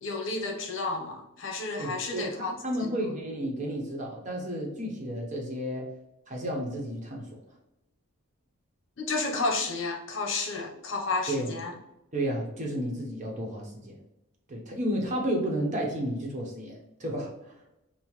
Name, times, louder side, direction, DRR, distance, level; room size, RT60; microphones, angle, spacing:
voice 1, 0.0-2.5 9.0-11.7, left 3 dB, 65° left, 2 dB, 0.7 m, -31 dB
voice 2, 1.8-5.9 6.3-7.4 11.3-11.5 12.1-14.0 14.5-17.6, equal, 35° right, -1 dB, 0.9 m, -32 dB
5.6 x 2.1 x 3.1 m, 0.87 s
head